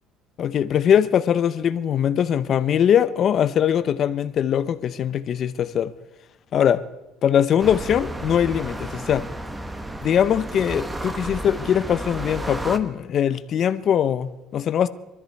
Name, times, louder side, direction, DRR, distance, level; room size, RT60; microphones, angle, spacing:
voice 1, 0.4-5.9 6.5-6.8 7.2-9.3 10.0-14.9, left 9 dB, 45° left, 0.7 m, -21 dB
sound 1, 7.6-12.8, right 1 dB, 10° right, 1.1 m, -32 dB
22.5 x 13.5 x 4.7 m
cardioid pair, 130°, 0 cm